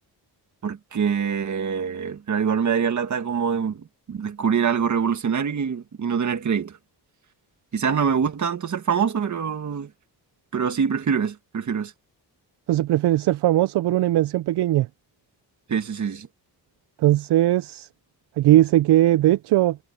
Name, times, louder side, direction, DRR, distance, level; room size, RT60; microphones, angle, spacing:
voice 1, 0.6-6.8 7.7-9.9 10.5-11.9 15.7-16.3, right 7 dB, 45° right, 1.8 m, -24 dB
voice 2, 12.7-14.9 17.0-17.9 18.4-19.8, right 14 dB, 70° right, 0.5 m, -19 dB
wide cardioid pair, 160°, 42 cm